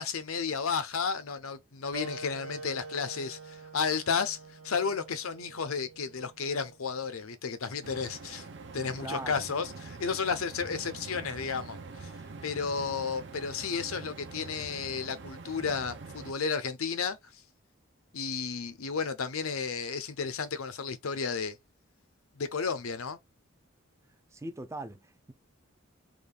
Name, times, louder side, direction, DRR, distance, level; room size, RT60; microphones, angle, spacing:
voice 1, 0.0-4.4 4.6-8.4 8.7-12.1 12.4-17.2 18.1-21.5 22.4-23.2, left 5 dB, 85° left, 0.7 m, -32 dB
Wind instrument woodwind instrument, 1.9-7.0, right 3 dB, 80° right, 1.3 m, -46 dB
sound 1, 7.8-16.3, right 4 dB, 55° right, 0.6 m, -45 dB
voice 2, 9.0-9.4 24.3-25.3, right 2 dB, 15° right, 0.3 m, -40 dB
3.7 x 2.4 x 3.3 m
head